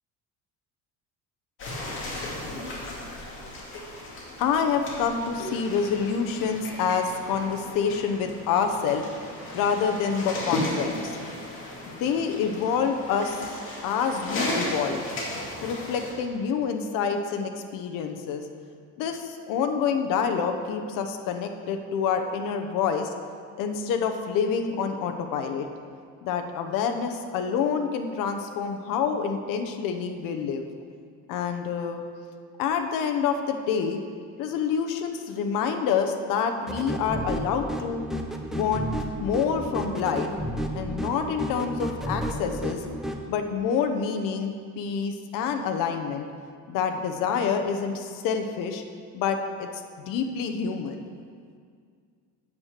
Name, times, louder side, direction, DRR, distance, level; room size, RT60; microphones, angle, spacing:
sound 1, 1.6-16.1, left 1 dB, 35° left, 2.3 m, -35 dB
voice 1, 4.4-9.0 9.5-11.2 11.9-13.4 13.8-15.0 15.6-18.4 19.0-23.1 23.6-25.7 26.2-30.6 31.3-32.0 32.6-34.0 34.4-38.0 38.5-38.9 39.2-40.3 40.7-42.8 43.3-46.3 46.7-48.8 49.1-51.0, left 6 dB, 60° left, 6 dB, 0.9 m, -27 dB
sound 2, 36.7-43.2, equal, ahead, 0.4 m, -32 dB
9.6 x 7.5 x 6.5 m, 2.1 s
cardioid pair, 175°, 36 cm